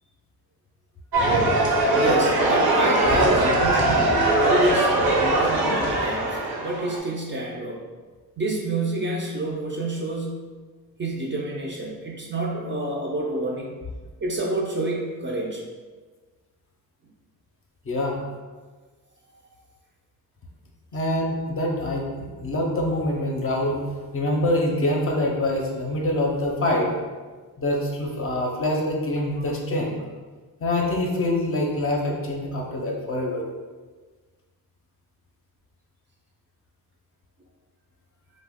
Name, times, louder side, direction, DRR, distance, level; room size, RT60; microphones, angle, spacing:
sound 1, 1.1-7.0, right 2 dB, 75° right, 0.7 m, -21 dB
voice 1, 2.0-7.8 8.4-10.5 11.0-13.8 14.2-15.6, right 1 dB, 35° right, -1 dB, 0.4 m, -28 dB
voice 2, 17.9-18.2 20.9-23.8 24.1-26.9 27.6-29.9 30.6-33.4, left 1 dB, 35° left, 0 dB, 0.5 m, -25 dB
2.8 x 2.1 x 3.5 m, 1.4 s
wide cardioid pair, 125°, 37 cm